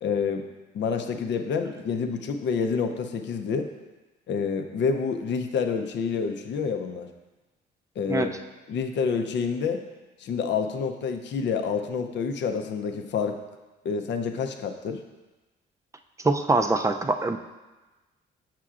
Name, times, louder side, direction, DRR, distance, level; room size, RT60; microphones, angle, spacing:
voice 1, 0.0-0.4 0.7-3.7 4.3-7.1 8.0-8.3 8.7-9.8 10.2-13.4 13.8-15.0, left 5 dB, 65° left, 6 dB, 0.6 m, -28 dB
voice 2, 16.2-17.4, right 3 dB, 15° right, 6 dB, 0.4 m, -23 dB
7.5 x 5.8 x 2.4 m, 1.1 s
cardioid pair, 90°, 20 cm